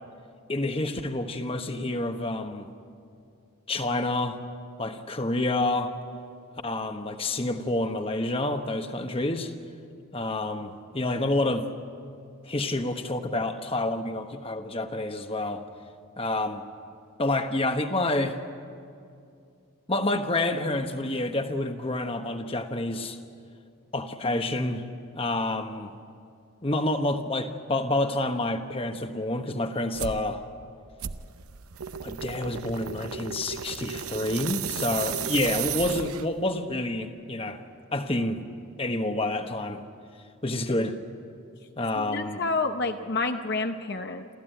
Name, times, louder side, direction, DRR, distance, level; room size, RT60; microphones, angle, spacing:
voice 1, 0.5-2.7 3.7-4.4 4.8-5.9 6.6-9.5 10.1-11.7 12.5-15.6 16.2-16.6 17.2-18.4 19.9-23.2 23.9-24.8 25.1-25.9 26.6-30.4 32.0-37.6 37.9-38.4 38.8-39.8 40.4-41.0 41.8-42.4, left 2 dB, 25° left, 7 dB, 1.1 m, -28 dB
sound 1, 29.9-30.2 31.0-36.4, right 8 dB, 85° right, 0.8 m, -34 dB
voice 2, 42.0-44.3, left 3 dB, 50° left, 6 dB, 0.8 m, -29 dB
28.0 x 14.5 x 9.1 m, 2.4 s
head